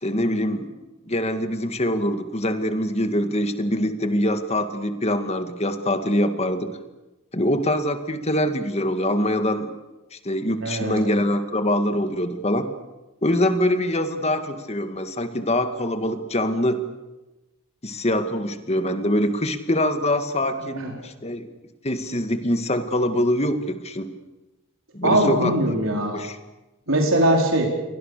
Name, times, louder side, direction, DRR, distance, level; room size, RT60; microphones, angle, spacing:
voice 1, 0.0-0.7 1.1-6.7 7.3-9.7 10.1-12.7 13.2-16.8 17.8-21.5 21.8-24.1 24.9-25.5 26.0-26.4, left 1 dB, 30° left, 8 dB, 2.1 m, -24 dB
voice 2, 10.6-11.1 20.8-20.9 25.0-26.2 26.9-27.7, right 1 dB, 70° right, 0 dB, 4.7 m, -21 dB
29.5 x 23.5 x 6.8 m, 1.1 s
head